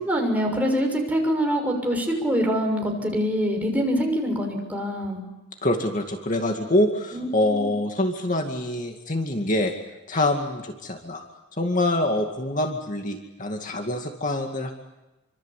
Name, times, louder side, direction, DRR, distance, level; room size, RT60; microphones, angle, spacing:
voice 1, 0.0-5.2 7.1-7.7, equal, 10° right, 1 dB, 6.5 m, -25 dB
voice 2, 5.6-9.7 10.1-11.2 11.6-14.7, left 1 dB, 40° left, 3 dB, 2.3 m, -25 dB
27.0 x 25.5 x 8.4 m, 1.0 s
head